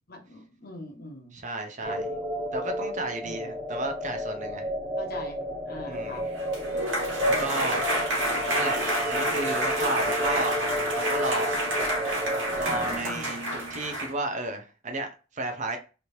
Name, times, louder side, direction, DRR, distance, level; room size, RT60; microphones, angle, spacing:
voice 1, 0.1-1.3 1.8-2.0 3.2-3.5 5.0-6.2 7.2-7.8 13.0-13.4, left 2 dB, 50° left, 1.0 m, -43 dB
voice 2, 1.3-2.1 2.5-4.7 5.8-6.2 7.2-7.9 8.5-8.8 9.1-10.6 10.9-11.5 12.5-15.1 15.3-15.8, right 2 dB, 40° right, 0.6 m, -32 dB
sound 1, 1.8-13.0, equal, 5° right, 0.7 m, -32 dB
sound 2, 6.2-14.1, right 1 dB, 75° right, 1.6 m, -29 dB
3.3 x 2.9 x 2.7 m
head